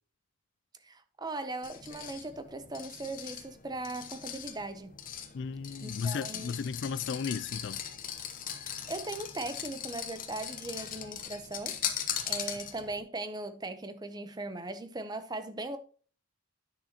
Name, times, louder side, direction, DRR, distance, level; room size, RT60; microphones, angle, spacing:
voice 1, 0.8-5.0 5.8-6.5 8.5-11.8 12.3-15.8, right 2 dB, 20° right, 0.7 m, -39 dB
sound 1, 1.6-13.0, left 9 dB, 40° left, 0.9 m, -39 dB
voice 2, 5.3-7.8, left 6 dB, 55° left, 0.3 m, -34 dB
9.9 x 6.5 x 2.9 m
head